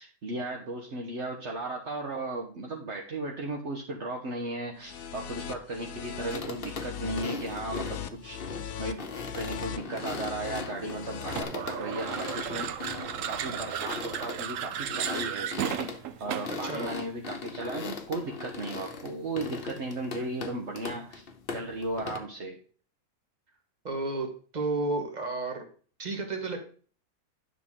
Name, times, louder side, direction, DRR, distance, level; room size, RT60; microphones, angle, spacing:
voice 1, 0.0-12.7 13.3-15.8 16.2-21.2 21.5-22.6, right 2 dB, 55° right, 0 dB, 1.4 m, -36 dB
sound 1, 4.8-11.4, left 9 dB, 90° left, 1.2 m, -39 dB
sound 2, 6.3-22.2, left 4 dB, 45° left, 1.1 m, -39 dB
sound 3, 11.3-16.7, right 9 dB, 70° right, 1.0 m, -34 dB
voice 2, 16.6-16.9 23.8-24.3 24.5-25.6 26.0-26.6, right 3 dB, 30° right, 4 dB, 1.7 m, -31 dB
10.0 x 6.2 x 3.7 m, 0.42 s
omnidirectional pair, 1.4 m